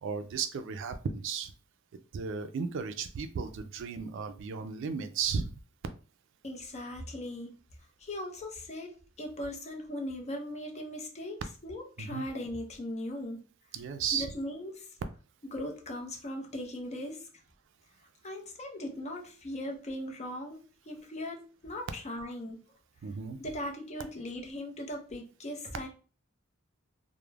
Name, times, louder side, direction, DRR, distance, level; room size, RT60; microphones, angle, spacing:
voice 1, 0.0-1.5 2.1-5.5 12.0-12.2 13.7-14.3 23.0-23.4, right 6 dB, 65° right, 9 dB, 0.3 m, -34 dB
voice 2, 6.4-7.5 8.0-13.4 14.1-14.9 15.5-17.3 18.2-22.6 23.4-25.9, left 1 dB, 35° left, 2 dB, 0.6 m, -39 dB
2.3 x 2.0 x 3.2 m, 0.38 s
head